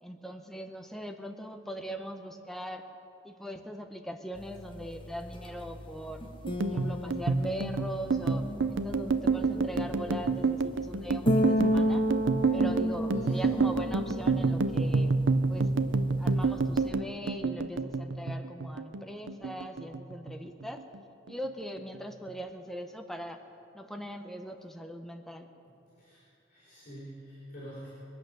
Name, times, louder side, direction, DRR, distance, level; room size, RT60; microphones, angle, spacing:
voice 1, 0.0-2.8 3.2-6.2 6.6-12.1 12.5-15.1 15.5-15.7 16.2-20.8 21.3-23.4 23.7-25.5, equal, ahead, 4 dB, 0.6 m, -40 dB
sound 1, 4.4-16.9, equal, 25° left, 1.1 m, -33 dB
sound 2, 6.4-19.0 19.3-20.3 20.6-21.0 21.3-22.0, right 4 dB, 80° right, 0.6 m, -28 dB
voice 2, 13.1-13.6 26.0-26.2 26.5-27.9, right 1 dB, 45° left, -9 dB, 4.2 m, -45 dB
22.0 x 8.5 x 6.5 m, 2.7 s
head